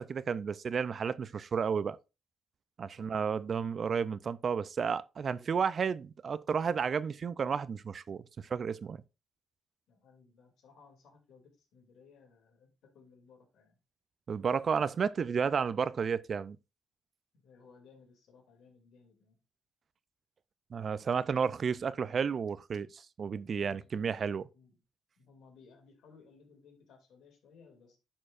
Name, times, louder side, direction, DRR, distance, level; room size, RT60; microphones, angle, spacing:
voice 1, 0.0-2.0 2.8-9.0 14.3-16.6 20.7-24.4, right 6 dB, 45° right, 0.3 m, -32 dB
voice 2, 3.0-3.3 9.9-13.8 17.4-19.4 23.6-24.8 25.2-28.0, left 5 dB, 75° left, 2.4 m, -60 dB
11.0 x 4.4 x 2.4 m
cardioid pair, 90°, 0 cm